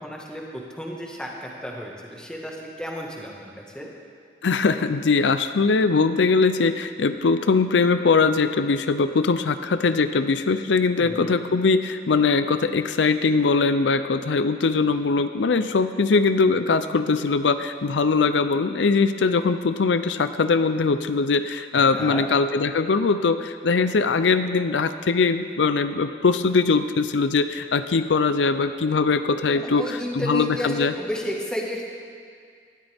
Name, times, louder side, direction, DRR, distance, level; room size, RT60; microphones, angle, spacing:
voice 1, 0.0-3.9 11.0-11.3 21.9-22.3 29.5-31.8, equal, 5° left, -2 dB, 1.6 m, -32 dB
voice 2, 4.4-29.9 30.3-30.9, left 4 dB, 85° left, 11 dB, 0.5 m, -21 dB
19.5 x 13.0 x 3.5 m, 2.1 s
head